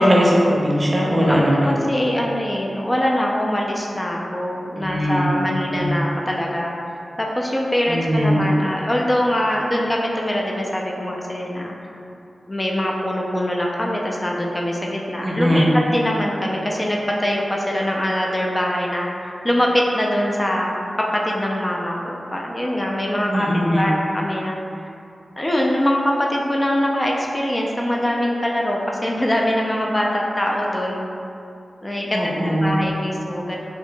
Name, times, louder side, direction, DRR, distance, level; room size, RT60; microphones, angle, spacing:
voice 1, 0.0-1.7 4.8-5.9 7.9-8.4 15.2-15.8 23.3-23.9 32.1-32.8, equal, 40° right, -4 dB, 0.7 m, -19 dB
voice 2, 1.7-6.7 7.2-11.7 12.5-15.7 15.9-20.8 21.2-23.5 23.7-24.6 25.4-31.1 31.8-32.2 32.4-33.6, equal, 25° left, -2 dB, 0.4 m, -23 dB
4.3 x 2.8 x 2.2 m, 2.6 s
cardioid pair, 45°, 0 cm